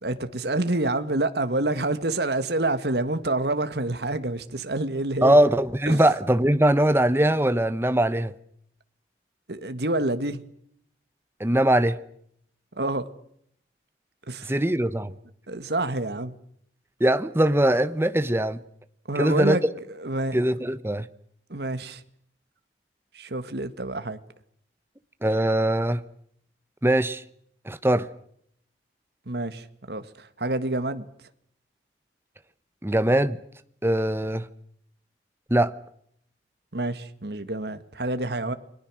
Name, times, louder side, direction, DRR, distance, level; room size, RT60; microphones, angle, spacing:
voice 1, 0.0-5.4 5.9-6.0 9.5-10.4 12.8-13.1 14.3-14.5 15.5-16.4 19.1-20.4 21.5-22.0 23.1-24.2 29.3-31.1 36.7-38.5, right 2 dB, 65° right, 1.7 m, -28 dB
voice 2, 5.2-8.3 11.4-12.0 14.4-15.1 17.0-18.6 19.2-19.6 20.3-21.1 25.2-26.0 26.8-27.2 27.7-28.1 32.8-33.4 33.8-34.5 35.5-35.7, right 1 dB, 15° right, 0.9 m, -21 dB
29.5 x 22.0 x 6.3 m
head